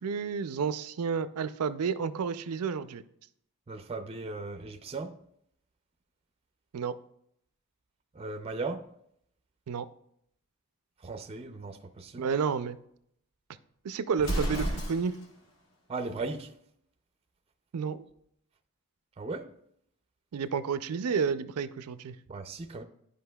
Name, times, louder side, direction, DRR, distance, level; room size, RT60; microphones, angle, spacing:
voice 1, 0.0-3.0 6.7-7.0 9.7-9.9 12.2-12.8 13.8-15.2 17.7-18.0 20.3-22.2, right 6 dB, 85° right, 0.4 m, -31 dB
voice 2, 3.7-5.2 8.1-8.9 11.0-12.3 15.9-16.5 19.2-19.5 22.3-22.8, right 3 dB, 25° right, 0.4 m, -37 dB
Explosion, 14.2-15.3, right 1 dB, 65° left, 1.3 m, -31 dB
11.5 x 5.1 x 2.2 m
head